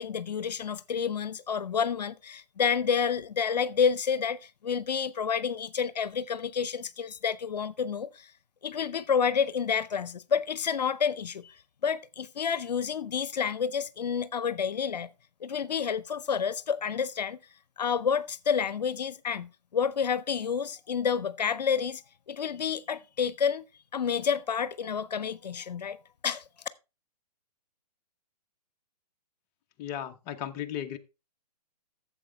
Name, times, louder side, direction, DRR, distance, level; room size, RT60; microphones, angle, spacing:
voice 1, 0.0-8.3 8.6-11.5 11.8-15.1 15.4-17.4 17.8-22.0 22.3-23.6 23.9-26.0 26.2-26.4, left 7 dB, 85° left, 0.7 m, -29 dB
voice 2, 29.8-31.0, left 10 dB, 30° left, 0.9 m, -35 dB
12.0 x 7.6 x 3.4 m
hypercardioid pair, 140°, 21 cm